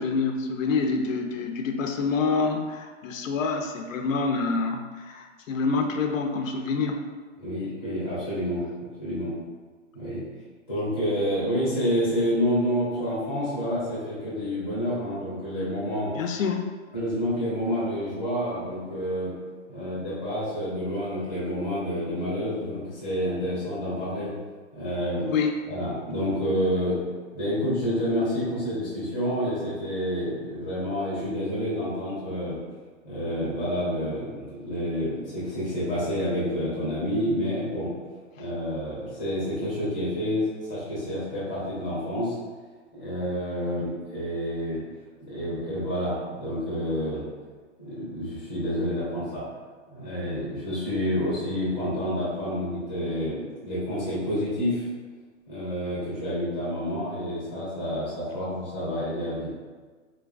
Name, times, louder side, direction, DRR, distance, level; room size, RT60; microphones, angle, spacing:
voice 1, 0.0-7.0 16.1-16.7 25.2-25.5, left 4 dB, 80° left, 4 dB, 0.5 m, -27 dB
voice 2, 7.4-9.3 9.9-10.2 10.7-16.1 16.9-19.3 19.7-24.3 24.7-25.3 25.7-27.0 27.3-32.6 33.0-37.9 38.4-42.4 42.9-44.8 45.2-47.2 47.8-49.4 49.9-54.9 55.5-59.5, equal, 10° left, -11 dB, 0.6 m, -28 dB
3.8 x 2.3 x 2.4 m, 1.4 s
hypercardioid pair, 180°, 38 cm